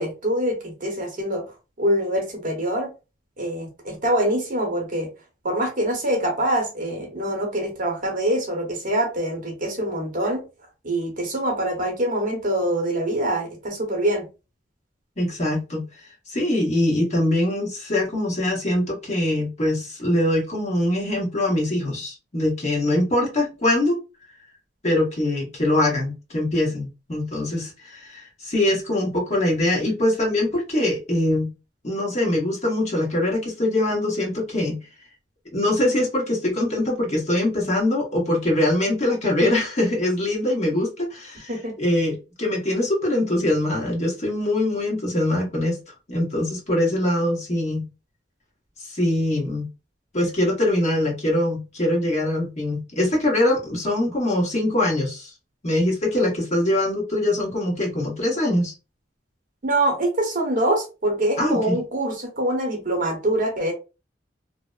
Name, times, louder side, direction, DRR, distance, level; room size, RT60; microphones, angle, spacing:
voice 1, 0.0-1.4 1.8-2.9 3.4-5.1 5.4-10.4 10.8-14.2 41.5-41.7 59.6-63.7, right 1 dB, 50° right, 2 dB, 0.9 m, -24 dB
voice 2, 15.2-15.9 16.3-24.0 24.8-31.5 31.8-34.8 35.5-45.8 46.1-47.9 48.8-49.7 50.1-55.3 55.6-58.7 61.4-61.8, left 1 dB, 40° left, -2 dB, 1.0 m, -23 dB
2.7 x 2.0 x 2.3 m, 0.29 s
head